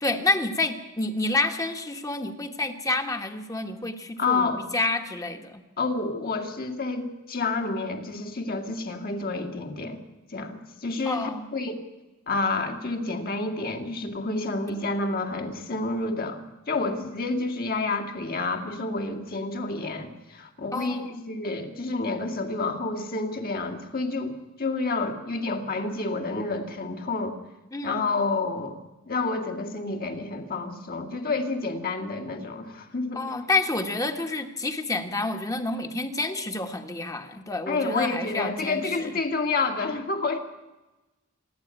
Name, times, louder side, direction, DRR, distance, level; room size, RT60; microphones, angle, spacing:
voice 1, 0.0-5.6 11.0-11.5 20.7-21.2 27.7-28.2 33.1-39.1, left 2 dB, 15° left, 6 dB, 1.6 m, -29 dB
voice 2, 4.2-4.6 5.8-10.0 10.3-11.8 12.3-27.4 27.8-28.8 29.1-33.4 37.7-40.4, left 3 dB, 45° left, 5 dB, 2.4 m, -29 dB
27.0 x 11.0 x 9.1 m, 1.1 s
head